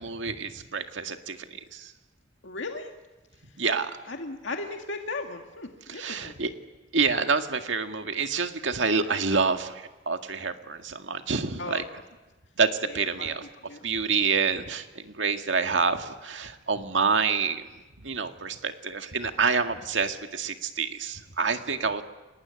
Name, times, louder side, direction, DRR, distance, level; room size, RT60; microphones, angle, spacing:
voice 1, 0.0-1.9 3.6-3.9 5.9-6.5 6.9-11.8 12.6-13.5 13.8-17.7 18.0-22.0, right 5 dB, 90° right, 6 dB, 1.9 m, -27 dB
voice 2, 2.4-2.9 4.1-6.3 11.6-11.8 13.2-13.3 13.7-13.8, left 3 dB, 90° left, 3 dB, 2.0 m, -36 dB
30.0 x 19.5 x 9.8 m, 1.2 s
head